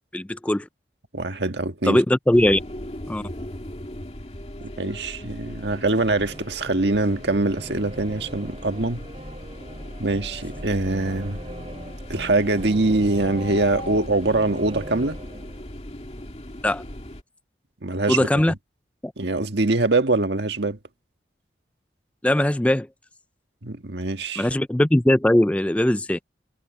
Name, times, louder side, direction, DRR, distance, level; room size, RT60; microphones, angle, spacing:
voice 1, 0.1-0.7 1.9-2.6 3.1-3.2 16.6-16.8 18.1-18.5 22.2-22.9 24.4-26.2, left 1 dB, 5° left, 0.3 m, -20 dB
voice 2, 1.1-2.0 4.8-9.1 10.0-11.4 12.1-15.2 17.8-18.5 19.2-20.8 23.6-24.5, right 2 dB, 70° right, 1.6 m, -23 dB
sound 1, 2.3-17.2, left 1 dB, 35° left, 2.5 m, -38 dB
sound 2, 5.9-15.8, right 1 dB, 30° right, 4.7 m, -41 dB
head